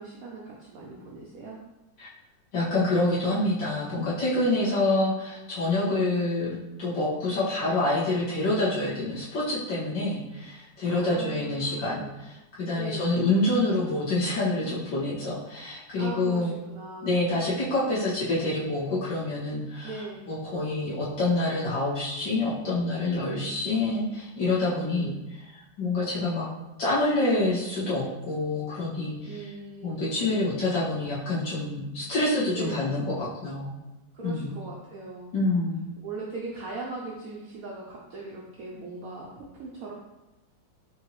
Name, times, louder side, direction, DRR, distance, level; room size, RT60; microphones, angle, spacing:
voice 1, 0.0-1.6 4.6-4.9 10.8-12.2 12.7-13.1 16.0-17.1 19.8-20.4 23.2-23.6 24.9-25.3 29.2-30.5 32.5-33.0 34.1-35.3 36.0-39.9, right 3 dB, 70° right, -3 dB, 0.8 m, -39 dB
voice 2, 2.5-16.5 17.0-25.1 25.4-26.5 26.8-29.4 29.8-33.8 34.2-34.5 35.3-35.8, left 2 dB, 70° left, -9 dB, 2.1 m, -27 dB
5.5 x 2.8 x 3.0 m, 0.99 s
omnidirectional pair, 2.1 m